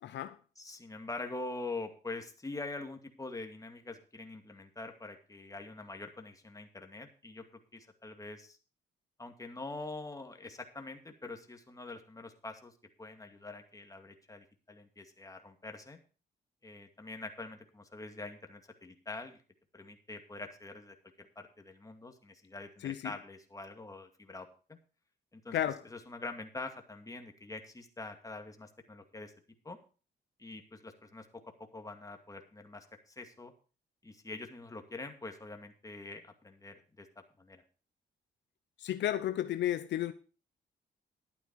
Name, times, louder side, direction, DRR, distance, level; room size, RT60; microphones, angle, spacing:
voice 1, 0.0-0.4 22.8-23.1 25.5-25.8 38.8-40.1, left 12 dB, 75° left, 0.7 m, -33 dB
voice 2, 0.6-7.4 7.7-8.6 9.2-12.7 13.0-16.0 16.6-19.4 19.7-24.8 25.3-25.6 25.8-29.3 29.6-29.8 30.4-33.5 34.0-37.1 37.4-37.6, left 2 dB, 20° left, 2.2 m, -45 dB
12.0 x 9.0 x 4.7 m
cardioid pair, 80°, 18 cm